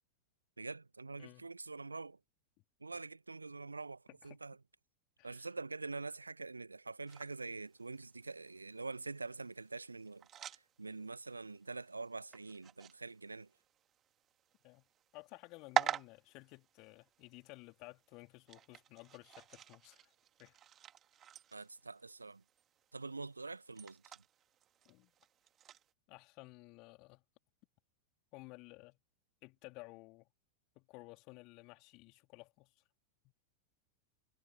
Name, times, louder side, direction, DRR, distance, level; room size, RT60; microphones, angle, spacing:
voice 1, 0.6-2.2 2.8-4.6 5.2-13.5 21.5-22.4 22.9-24.2, right 3 dB, 80° right, 1.9 m, -45 dB
sound 1, 7.1-25.9, right 10 dB, 30° right, 2.5 m, -46 dB
voice 2, 15.1-20.1 20.4-20.6 24.8-25.1 26.1-27.2 28.3-29.0 29.4-30.3 30.7-32.8 33.2-33.3, left 25 dB, 40° left, 3.3 m, -55 dB
figure-of-eight pair, 90°, 0 cm